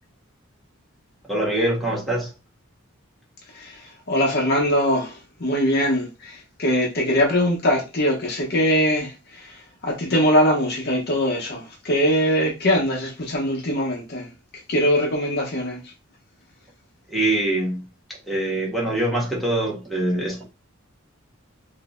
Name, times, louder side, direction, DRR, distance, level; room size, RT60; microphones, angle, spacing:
voice 1, 1.2-2.3 17.1-17.8 18.2-20.4, right 1 dB, ahead, 1.1 m, -24 dB
voice 2, 4.1-9.5 9.8-14.3 14.7-15.8, equal, 50° left, 0.8 m, -22 dB
3.8 x 2.6 x 2.5 m
head